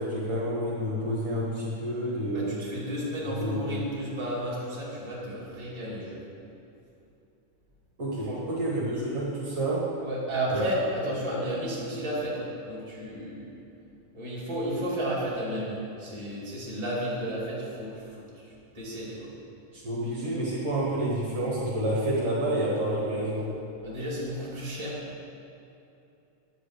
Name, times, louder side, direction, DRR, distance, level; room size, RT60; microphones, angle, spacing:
voice 1, 0.0-2.6 3.2-3.7 8.0-10.0 10.5-10.6 11.0-11.2 19.7-23.5, right 1 dB, 55° right, -6 dB, 2.1 m, -29 dB
voice 2, 2.3-6.2 8.2-8.4 10.0-13.5 14.1-19.3 23.8-25.0, right 1 dB, 10° right, -7 dB, 2.0 m, -33 dB
10.5 x 5.0 x 8.2 m, 2.8 s
omnidirectional pair, 3.7 m